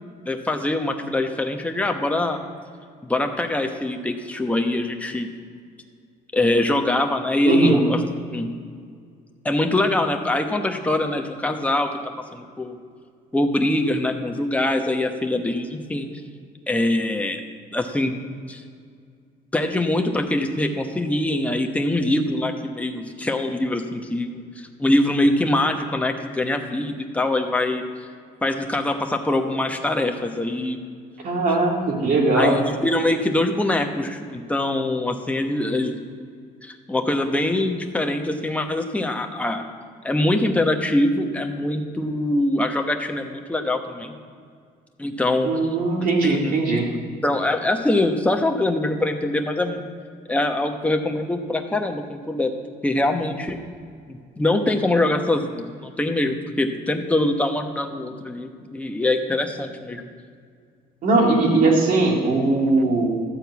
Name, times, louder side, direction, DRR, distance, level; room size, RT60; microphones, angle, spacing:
voice 1, 0.2-2.4 3.0-5.3 6.3-8.0 8.3-8.5 9.4-11.9 12.3-12.8 13.3-16.1 16.7-17.4 17.7-18.1 18.5-18.6 19.5-27.8 28.4-30.8 32.3-36.0 36.6-39.6 40.0-44.1 45.0-45.5 46.2-46.8 47.2-49.8 50.3-52.5 52.8-53.6 54.1-60.1, left 1 dB, 10° left, 3 dB, 1.0 m, -23 dB
voice 2, 7.4-7.8 31.2-32.6 45.4-46.9 61.0-63.1, right 3 dB, 55° right, 0 dB, 2.4 m, -19 dB
13.0 x 4.4 x 8.2 m, 2.1 s
cardioid pair, 110°, 17 cm